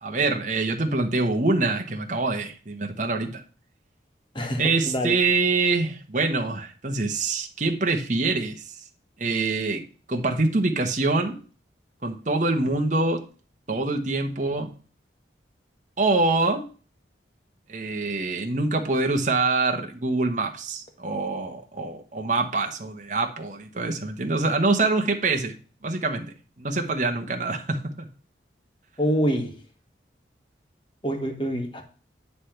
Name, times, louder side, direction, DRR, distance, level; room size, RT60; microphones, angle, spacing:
voice 1, 0.0-3.4 4.6-8.8 9.2-9.8 10.1-11.4 12.0-13.2 13.7-14.7 16.0-16.6 17.7-25.5 25.8-28.1, right 3 dB, 40° right, 1.1 m, -25 dB
voice 2, 4.3-5.1 29.0-29.6 31.0-31.8, equal, 25° left, 1.3 m, -26 dB
9.7 x 3.3 x 5.8 m
head